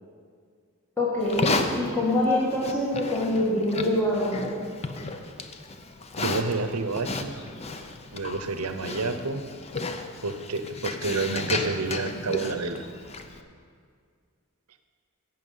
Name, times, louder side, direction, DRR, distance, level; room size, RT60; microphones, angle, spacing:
voice 1, 1.0-4.5, left 1 dB, 10° left, -6 dB, 1.5 m, -25 dB
Livestock farm animals working animals, 1.2-13.4, left 3 dB, 30° left, 0.6 m, -33 dB
voice 2, 6.2-7.3 8.1-9.4 10.2-12.8, right 3 dB, 90° right, 9 dB, 0.8 m, -29 dB
11.5 x 8.3 x 5.5 m, 2.1 s
head